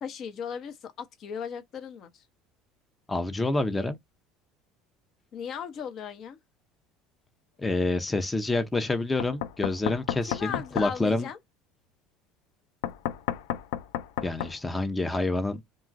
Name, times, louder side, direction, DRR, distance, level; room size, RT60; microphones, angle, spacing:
voice 1, 0.0-2.2 5.3-6.4 10.3-11.4, left 7 dB, 50° left, 0.7 m, -37 dB
voice 2, 3.1-4.0 7.6-11.3 14.2-15.6, left 2 dB, 15° left, 0.5 m, -27 dB
Knock, 9.2-10.9 12.8-14.5, left 11 dB, 75° left, 0.3 m, -32 dB
3.0 x 2.3 x 2.5 m
hypercardioid pair, 75°, 0 cm